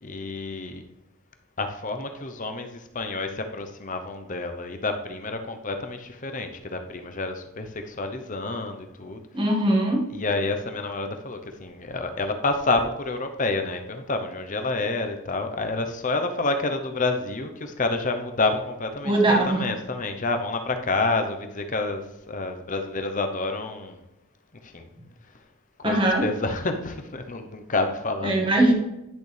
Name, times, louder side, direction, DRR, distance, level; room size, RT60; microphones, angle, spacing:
voice 1, 0.0-0.8 1.6-9.2 10.1-24.1 24.6-24.9 25.8-28.6, left 3 dB, 35° left, 6 dB, 0.8 m, -29 dB
voice 2, 9.3-10.0 19.0-19.6 25.8-26.3 28.2-28.7, right 1 dB, 25° right, 0 dB, 1.7 m, -20 dB
10.5 x 6.7 x 3.3 m, 0.94 s
head